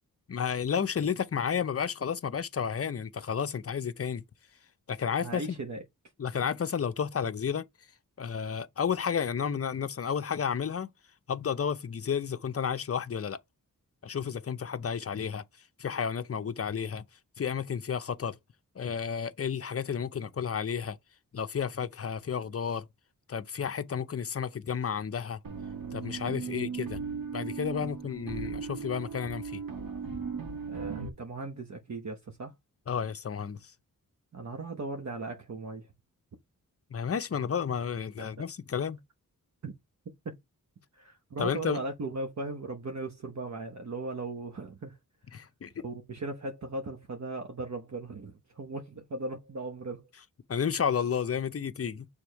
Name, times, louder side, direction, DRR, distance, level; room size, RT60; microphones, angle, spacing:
voice 1, 0.3-4.2 4.9-5.4 6.2-7.7 8.2-10.9 11.3-13.4 14.0-15.4 15.8-17.0 17.4-18.3 18.8-21.0 21.3-22.9 23.3-25.4 25.9-27.0 27.3-29.6 32.9-33.6 36.9-39.0 41.4-41.8 45.3-45.8 50.5-52.1, left 7 dB, 45° left, 0.7 m, -31 dB
voice 2, 5.2-5.8 26.3-26.7 27.8-27.9 30.7-32.5 34.3-35.9 38.2-38.3 39.6-39.7 40.2-40.3 40.9-45.0 45.8-50.1, right 2 dB, 55° right, 1.1 m, -38 dB
sound 1, 25.4-31.1, right 5 dB, 75° right, 1.7 m, -37 dB
6.7 x 3.5 x 4.6 m
wide cardioid pair, 85°, 34 cm